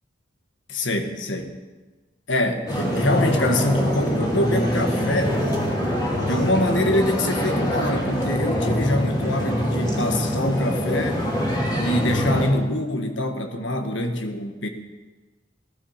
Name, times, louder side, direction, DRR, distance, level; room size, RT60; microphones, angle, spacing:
voice 1, 0.7-1.5 2.3-5.4 6.2-11.3 11.8-14.7, left 1 dB, 80° left, 6 dB, 1.6 m, -24 dB
sound 1, 2.7-12.5, equal, 20° left, 2.6 m, -24 dB
16.5 x 12.0 x 5.8 m, 1.3 s
head